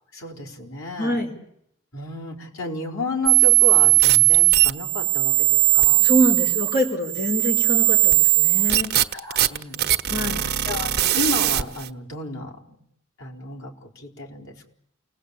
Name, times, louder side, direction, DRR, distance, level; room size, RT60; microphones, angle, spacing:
voice 1, 0.1-1.2 1.9-6.1 9.1-12.8 13.2-14.7, left 2 dB, 85° left, -1 dB, 4.6 m, -32 dB
voice 2, 1.0-1.4 6.0-8.9 10.1-10.5, equal, 45° left, 3 dB, 4.7 m, -24 dB
sound 1, 3.3-11.9, right 15 dB, 50° right, 1.1 m, -18 dB
29.0 x 19.5 x 8.5 m, 0.75 s
head